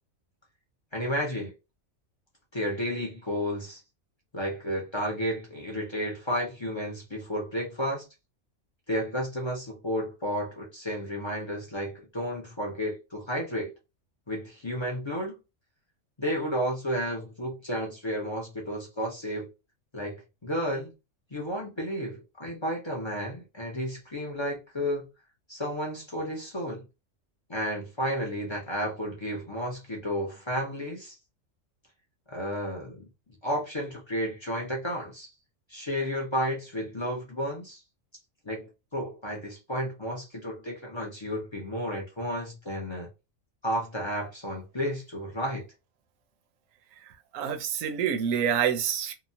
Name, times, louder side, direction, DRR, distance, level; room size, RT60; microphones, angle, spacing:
voice 1, 0.9-1.5 2.5-3.8 4.3-8.0 8.9-13.7 14.3-15.4 16.2-19.5 19.9-20.9 21.3-25.1 25.5-26.8 27.5-31.2 32.3-33.1 33.4-35.3 35.7-37.8 38.4-43.1 43.6-45.6, equal, 35° left, 0.4 m, -32 dB
voice 2, 47.3-49.1, right 8 dB, 80° right, 1.0 m, -27 dB
2.8 x 2.2 x 2.6 m
omnidirectional pair, 1.4 m